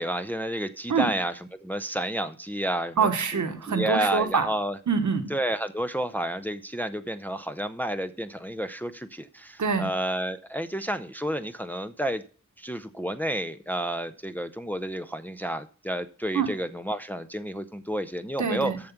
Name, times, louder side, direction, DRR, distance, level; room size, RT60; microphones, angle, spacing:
voice 1, 0.0-1.3 1.6-3.0 3.7-4.8 5.3-12.2 12.6-18.7, right 1 dB, 5° left, 9 dB, 0.6 m, -30 dB
voice 2, 3.0-4.5 4.9-5.3 9.6-9.9 16.3-16.5 18.4-18.8, right 5 dB, 65° right, 7 dB, 1.1 m, -25 dB
7.1 x 6.7 x 5.8 m, 0.40 s
cardioid pair, 40°, 32 cm